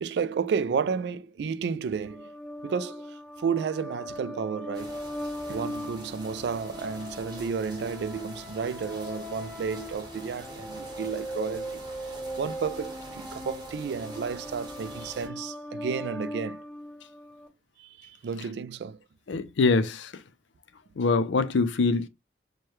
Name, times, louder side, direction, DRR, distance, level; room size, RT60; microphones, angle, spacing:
voice 1, 0.0-2.3 2.6-5.0 5.5-11.8 12.4-16.6 17.8-19.0, right 6 dB, 70° right, 0.3 m, -32 dB
sound 1, 2.0-17.5, equal, 5° left, 2.1 m, -39 dB
sound 2, 4.7-15.3, right 2 dB, 25° right, 1.0 m, -46 dB
voice 2, 19.3-20.1 21.0-22.1, left 3 dB, 90° left, 0.5 m, -24 dB
4.6 x 2.2 x 3.1 m
head